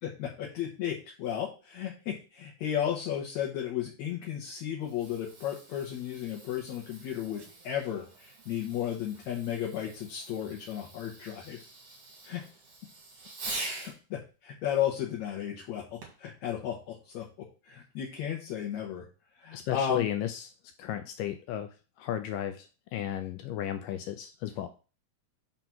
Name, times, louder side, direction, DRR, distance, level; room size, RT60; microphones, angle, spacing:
voice 1, 0.0-11.6 12.2-12.4 13.8-17.3 17.6-19.1 19.4-20.1, left 9 dB, 65° left, -1 dB, 1.9 m, -34 dB
Fireworks, 4.7-14.0 16.0-16.3 17.0-17.1, right 2 dB, 50° right, 2.6 m, -45 dB
voice 2, 19.5-20.5 20.8-21.7 22.0-24.7, left 11 dB, 80° left, 8 dB, 2.0 m, -34 dB
5.8 x 3.9 x 5.8 m, 0.34 s
omnidirectional pair, 4.2 m